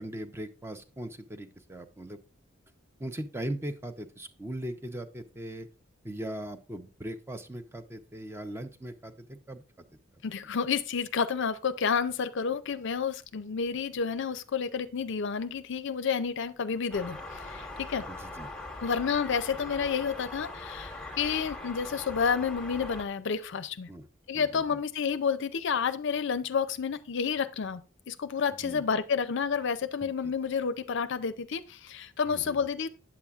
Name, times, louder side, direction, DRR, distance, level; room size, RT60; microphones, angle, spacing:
voice 1, 0.0-2.2 3.0-5.7 6.0-9.6 18.1-18.5 23.9-24.1 24.3-24.8 28.6-28.8 30.0-30.3 32.3-32.7, right 1 dB, 10° right, 0.5 m, -39 dB
voice 2, 10.2-18.0 18.8-23.9 24.3-32.9, left 6 dB, 60° left, 0.5 m, -30 dB
sound 1, 16.9-23.0, left 2 dB, 5° left, 1.1 m, -41 dB
8.5 x 7.0 x 2.4 m
head